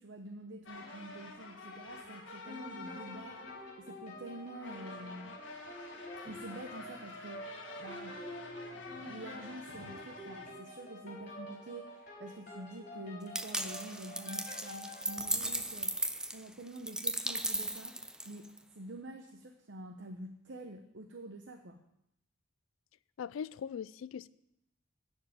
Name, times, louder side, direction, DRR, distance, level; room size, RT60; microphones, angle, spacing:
voice 1, 0.0-5.4 6.2-7.5 7.8-8.2 8.7-16.0 16.3-17.9 18.3-21.8, right 1 dB, 60° right, 5 dB, 0.8 m, -47 dB
sound 1, 0.7-10.5, left 3 dB, 65° left, 1.8 m, -49 dB
sound 2, 2.5-15.3, left 1 dB, 45° left, 4.8 m, -48 dB
sound 3, 13.3-18.6, right 1 dB, 5° right, 0.4 m, -36 dB
voice 2, 23.2-24.3, left 7 dB, 80° left, 17 dB, 0.3 m, -40 dB
13.0 x 4.7 x 8.7 m, 0.79 s
head